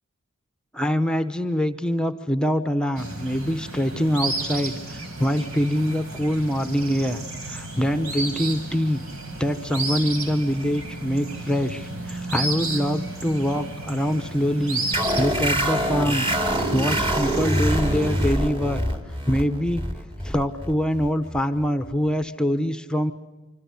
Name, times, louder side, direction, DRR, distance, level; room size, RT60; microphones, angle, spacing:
voice 1, 0.7-9.0 9.4-16.3 16.7-18.8 19.2-19.8 20.2-23.1, equal, 5° left, 10 dB, 0.9 m, -24 dB
sound 1, 3.0-18.3, right 2 dB, 85° right, 4.8 m, -33 dB
sound 2, 14.9-22.1, equal, 25° right, 2.5 m, -25 dB
26.5 x 25.5 x 8.3 m, 1.1 s
head